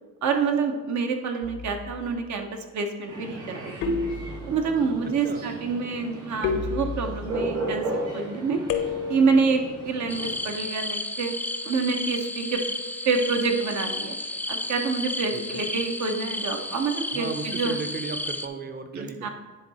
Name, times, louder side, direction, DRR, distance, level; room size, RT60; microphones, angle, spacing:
voice 1, 0.2-2.5 2.7-3.9 4.5-7.9 8.1-8.6 9.1-11.3 11.6-12.6 13.1-14.1 14.5-17.8 18.9-19.3, right 4 dB, 70° right, 4 dB, 1.0 m, -27 dB
sound 1, 1.4-2.0 3.8-4.7 6.4-7.4 8.7-9.4, left 4 dB, 85° left, 0.9 m, -30 dB
sound 2, 3.1-10.4, right 1 dB, 90° right, 2.4 m, -35 dB
sound 3, 10.1-18.5, left 1 dB, 5° left, 0.3 m, -32 dB
voice 2, 15.3-15.7 17.1-19.3, right 4 dB, 35° right, 8 dB, 0.7 m, -35 dB
9.9 x 3.8 x 4.2 m, 1.3 s
cardioid pair, 90°, 30 cm